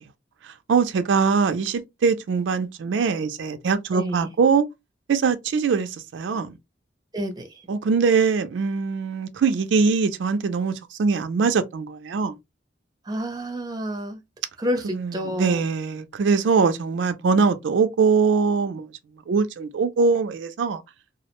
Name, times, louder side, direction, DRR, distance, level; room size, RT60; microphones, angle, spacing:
voice 1, 0.4-4.7 5.1-6.6 7.7-12.4 14.9-18.9 19.3-20.8, right 5 dB, 90° right, 0.4 m, -22 dB
voice 2, 3.9-4.3 7.1-7.6 13.1-14.2 14.6-15.6, equal, 20° right, 0.5 m, -29 dB
2.4 x 2.0 x 2.8 m
head